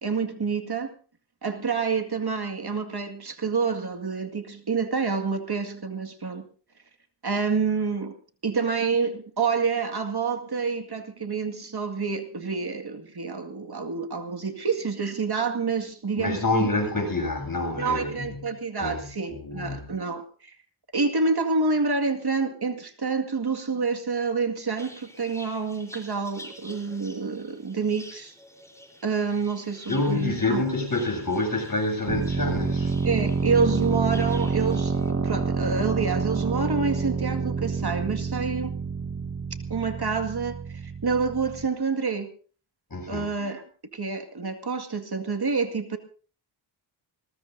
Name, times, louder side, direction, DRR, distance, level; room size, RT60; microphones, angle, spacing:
voice 1, 0.0-0.9 1.4-6.5 7.2-8.1 8.4-16.7 17.8-20.6 20.9-28.3 29.0-30.6 33.0-38.7 39.7-42.3 43.1-43.6 43.9-46.0, right 4 dB, 50° right, 2.1 m, -28 dB
voice 2, 16.2-19.8 29.9-33.0 33.7-34.0 42.9-43.4, left 2 dB, 45° left, 7.9 m, -28 dB
sound 1, 24.8-35.1, left 1 dB, 5° left, 4.0 m, -48 dB
sound 2, 32.1-41.7, right 4 dB, 35° right, 1.4 m, -28 dB
22.0 x 20.0 x 2.7 m
wide cardioid pair, 60°, 47 cm